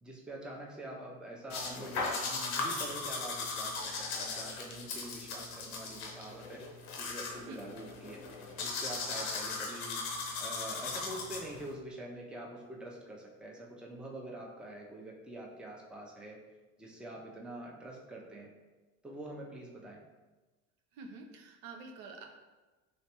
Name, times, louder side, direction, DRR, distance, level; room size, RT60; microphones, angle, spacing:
voice 1, 0.0-6.6 7.0-8.2 8.6-10.0 10.4-16.4 16.8-18.5 19.0-20.0, right 1 dB, ahead, -1 dB, 0.5 m, -45 dB
sound 1, 1.5-11.7, left 3 dB, 85° left, 0.7 m, -38 dB
voice 2, 20.9-22.3, right 3 dB, 65° right, 3 dB, 0.6 m, -47 dB
3.2 x 3.1 x 2.9 m, 1.2 s
hypercardioid pair, 70°, 42 cm